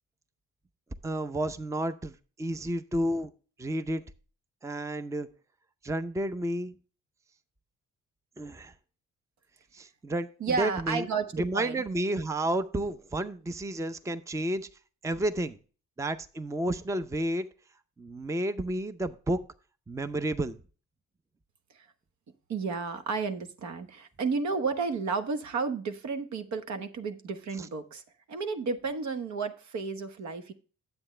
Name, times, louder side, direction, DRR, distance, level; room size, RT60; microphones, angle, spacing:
voice 1, 1.0-3.3 3.6-4.0 4.6-5.3 5.8-6.8 8.4-8.7 9.7-10.3 10.6-11.1 11.3-14.7 15.0-15.6 16.0-17.5 18.0-19.4 19.9-20.6 27.6-27.7, right 1 dB, 10° right, 12 dB, 0.6 m, -31 dB
voice 2, 10.4-11.8 21.7-21.9 22.5-28.0 28.3-30.5, right 4 dB, 70° right, 9 dB, 1.2 m, -32 dB
9.8 x 8.0 x 3.2 m, 0.37 s
cardioid pair, 90°, 30 cm